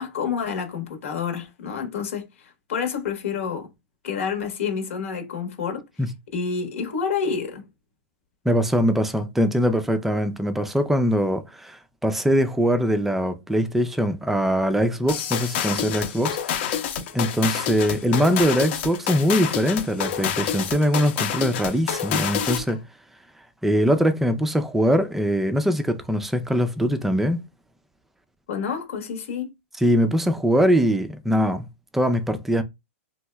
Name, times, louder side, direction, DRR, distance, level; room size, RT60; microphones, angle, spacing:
voice 1, 0.0-3.7 4.0-5.8 6.3-7.7 28.5-29.5, left 6 dB, 75° left, 1.4 m, -28 dB
voice 2, 8.5-16.8 17.1-22.8 23.6-27.4 29.8-31.7 31.9-32.6, equal, 5° right, 0.4 m, -22 dB
sound 1, 15.1-22.7, left 9 dB, 50° left, 0.8 m, -27 dB
3.0 x 2.7 x 2.2 m
hypercardioid pair, 145°, 7 cm